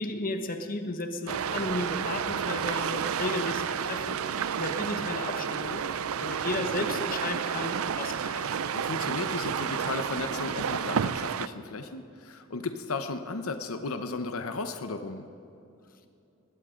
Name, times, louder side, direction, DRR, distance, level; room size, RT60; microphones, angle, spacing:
voice 1, 0.0-5.9 6.2-8.5, left 2 dB, 45° left, 6 dB, 1.1 m, -34 dB
sound 1, 1.3-11.5, right 7 dB, 80° right, 0.5 m, -31 dB
voice 2, 8.5-15.3, left 3 dB, 85° left, 8 dB, 0.9 m, -35 dB
20.5 x 16.5 x 3.8 m, 2.8 s
head